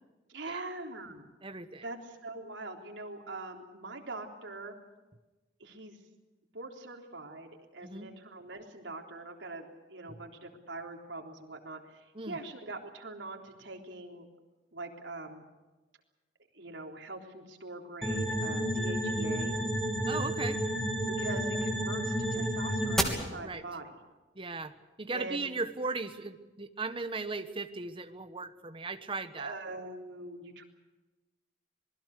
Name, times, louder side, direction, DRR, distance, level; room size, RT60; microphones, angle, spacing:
voice 1, 0.3-1.2 1.8-4.7 5.6-6.0 6.5-14.3 14.7-15.4 16.5-19.6 21.1-24.0 25.1-25.5 29.4-30.6, right 2 dB, 85° right, 2 dB, 3.6 m, -43 dB
voice 2, 1.4-1.8 7.8-8.1 10.1-10.2 12.1-12.4 20.1-20.6 23.4-23.6 24.3-24.7 25.0-29.6, right 3 dB, 30° right, 9 dB, 1.2 m, -37 dB
sound 1, 18.0-23.0, equal, ahead, 3.1 m, -31 dB
26.5 x 21.0 x 6.7 m, 1.2 s
head